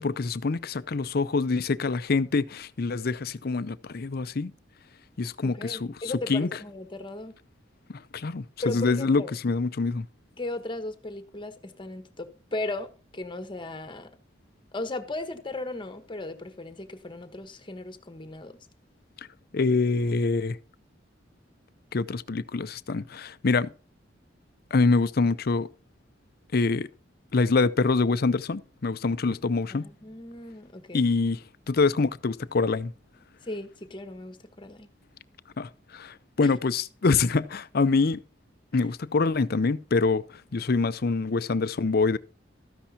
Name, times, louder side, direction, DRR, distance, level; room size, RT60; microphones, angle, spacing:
voice 1, 0.0-4.5 5.2-5.9 6.3-6.5 7.9-10.1 19.5-20.6 21.9-23.7 24.7-25.7 26.5-26.9 27.3-29.9 30.9-32.9 35.6-38.2 38.7-42.2, left 4 dB, 55° left, 0.6 m, -25 dB
voice 2, 5.4-7.3 8.6-9.3 10.4-14.1 14.7-18.6 29.7-31.0 33.4-34.9 36.4-36.5 38.8-38.9, left 2 dB, 25° left, 1.2 m, -36 dB
13.5 x 10.0 x 2.8 m
head